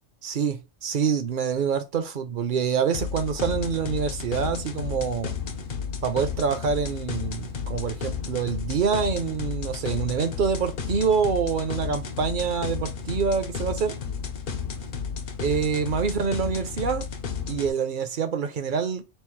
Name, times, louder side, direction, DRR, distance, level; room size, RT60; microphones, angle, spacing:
voice 1, 0.2-5.3 6.0-13.9 15.4-17.1 17.5-19.0, right 6 dB, 55° right, 0.7 m, -26 dB
sound 1, 2.9-17.7, left 6 dB, 55° left, 0.7 m, -32 dB
4.3 x 2.0 x 4.4 m
omnidirectional pair, 1.2 m